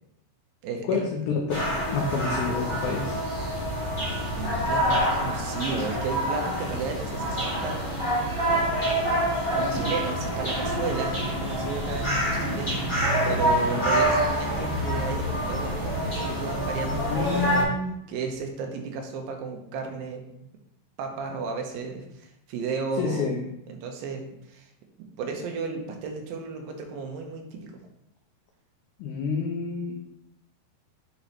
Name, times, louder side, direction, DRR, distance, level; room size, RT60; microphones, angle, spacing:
voice 1, 0.6-1.1 4.4-8.6 9.5-12.8 13.3-17.8 18.1-20.2 21.0-23.3 23.7-24.7 25.2-27.7, right 4 dB, 80° right, 3 dB, 2.4 m, -33 dB
voice 2, 1.5-3.2 16.9-17.9 23.0-23.4 29.0-29.9, left 5 dB, 80° left, 0 dB, 1.8 m, -29 dB
sound 1, 1.5-17.6, equal, 20° left, 0.8 m, -27 dB
8.8 x 3.9 x 3.0 m, 0.80 s
omnidirectional pair, 4.4 m